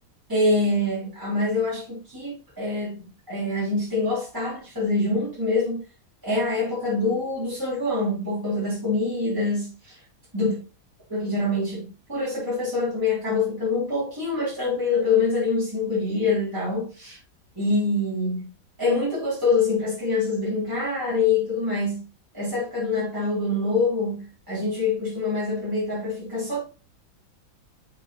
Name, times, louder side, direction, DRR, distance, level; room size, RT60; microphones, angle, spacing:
voice 1, 0.3-3.0 3.3-5.8 6.2-10.0 10.3-10.5 11.1-17.2 17.5-18.5 18.8-22.0 22.3-26.6, left 3 dB, 10° right, -8 dB, 3.2 m, -25 dB
6.5 x 6.5 x 3.1 m, 0.33 s
omnidirectional pair, 2.1 m